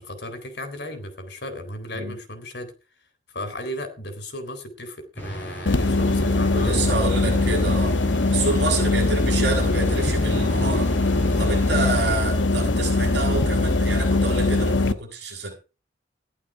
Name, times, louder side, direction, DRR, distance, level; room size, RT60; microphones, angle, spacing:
voice 1, 0.0-2.7 3.3-7.1 8.4-8.6 11.2-11.6, left 1 dB, 60° left, 8 dB, 3.8 m, -35 dB
sound 1, 5.2-12.1, equal, 10° left, 7.4 m, -35 dB
sound 2, 5.7-14.9, left 2 dB, 80° left, 1.1 m, -21 dB
voice 2, 6.5-8.0 8.3-10.9 11.4-15.6, right 3 dB, 60° right, 1 dB, 7.6 m, -28 dB
14.5 x 11.0 x 4.7 m, 0.32 s
head